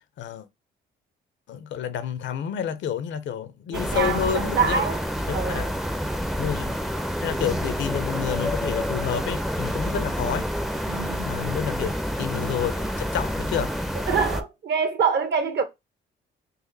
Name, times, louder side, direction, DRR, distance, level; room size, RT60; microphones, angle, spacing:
voice 1, 1.5-4.8 5.3-5.7 6.4-6.8 7.2-10.5 11.3-12.8 13.1-13.7, left 9 dB, 70° left, 0.6 m, -29 dB
sound 1, 3.7-14.4, equal, ahead, 0.4 m, -28 dB
voice 2, 3.7-5.1 5.3-5.8 10.9-11.5 14.1-15.6, right 6 dB, 60° right, 0.8 m, -25 dB
4.0 x 2.4 x 2.6 m
cardioid pair, 90°, 20 cm